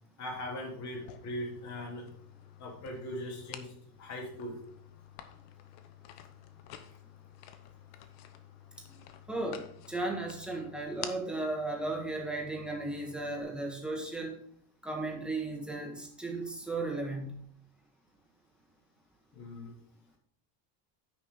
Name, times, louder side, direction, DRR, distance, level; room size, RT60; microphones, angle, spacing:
voice 1, 0.2-2.1 2.6-3.7 4.0-4.6 8.9-9.0 19.3-19.7, left 1 dB, 35° left, 0 dB, 2.8 m, -40 dB
sound 1, 0.9-13.4, left 11 dB, 80° left, 1.1 m, -51 dB
voice 2, 9.3-14.4 14.8-17.4, right 2 dB, ahead, 0 dB, 1.6 m, -35 dB
10.0 x 6.0 x 3.7 m, 0.64 s
cardioid pair, 155°, 46 cm